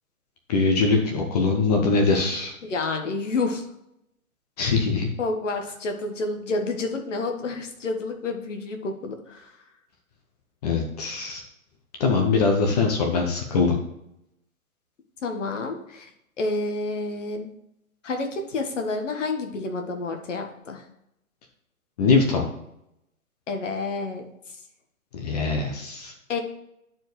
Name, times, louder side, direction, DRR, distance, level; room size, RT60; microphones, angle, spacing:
voice 1, 0.5-2.5 4.6-5.1 10.6-11.4 12.0-13.7 22.0-22.4 25.1-26.1, left 4 dB, 25° left, 2 dB, 0.9 m, -22 dB
voice 2, 2.6-3.6 5.2-9.5 15.2-16.1 16.4-17.5 18.0-20.8 23.5-24.2 26.3-26.4, left 3 dB, 55° left, 4 dB, 1.6 m, -29 dB
10.5 x 4.7 x 3.2 m, 0.81 s
figure-of-eight pair, 130°, 43 cm